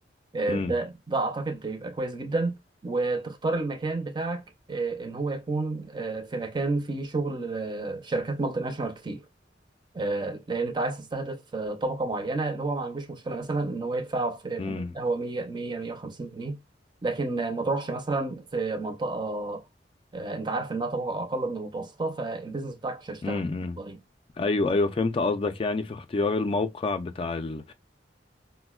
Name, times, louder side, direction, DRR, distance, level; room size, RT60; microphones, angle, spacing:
voice 1, 0.3-2.6 2.8-4.4 4.7-9.2 9.9-16.6 17.0-19.6 20.1-23.4 23.8-24.0, right 3 dB, 25° right, 0.5 m, -30 dB
voice 2, 14.6-14.9 23.2-23.8 24.4-27.7, left 3 dB, 30° left, 0.3 m, -27 dB
4.9 x 2.1 x 2.3 m
head